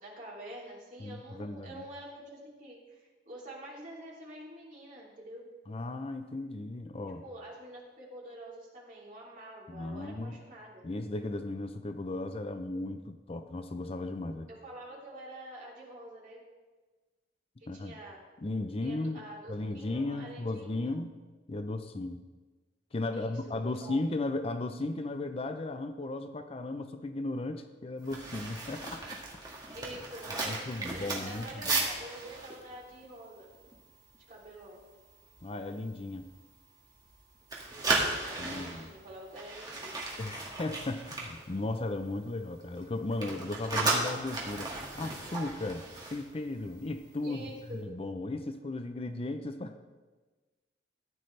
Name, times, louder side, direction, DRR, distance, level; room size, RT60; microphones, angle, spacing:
voice 1, 0.0-5.5 7.2-10.9 14.5-16.4 17.6-18.2 18.8-20.9 23.1-24.0 29.7-33.5 34.3-34.8 37.7-40.0 47.2-47.8, right 1 dB, 45° right, -4 dB, 2.9 m, -47 dB
voice 2, 1.0-1.8 5.7-7.2 9.7-10.4 10.8-14.5 17.7-17.9 18.4-19.2 19.5-21.1 21.5-22.2 22.9-29.2 30.5-31.8 35.4-36.3 38.4-38.9 40.2-47.5 47.7-49.8, left 2 dB, 35° left, 8 dB, 0.5 m, -36 dB
sound 1, 28.0-34.2 34.5-34.7 35.1-35.4 35.9-37.2 37.4-42.2 42.4-47.0 47.2-47.5, right 3 dB, 25° right, 1.9 m, -35 dB
14.0 x 9.2 x 3.3 m, 1.3 s
head